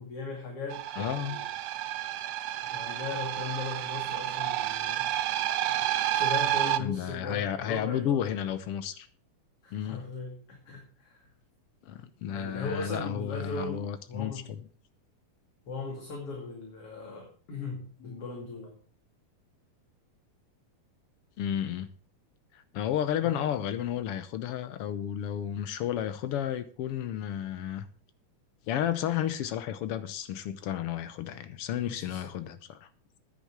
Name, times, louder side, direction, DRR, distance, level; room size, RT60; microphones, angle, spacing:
voice 1, 0.0-1.5 2.6-5.1 5.9-8.4 9.6-11.3 12.3-14.4 15.7-18.8 23.2-23.5 31.9-32.2, left 3 dB, 50° left, 0 dB, 3.2 m, -38 dB
sound 1, 0.7-6.8, right 13 dB, 90° right, 2.3 m, -30 dB
voice 2, 1.0-1.4 6.8-9.1 9.7-10.0 11.8-14.6 21.4-21.9 22.5-27.9 28.7-32.9, left 10 dB, 75° left, 11 dB, 1.3 m, -32 dB
10.5 x 9.7 x 6.0 m, 0.42 s
omnidirectional pair, 3.6 m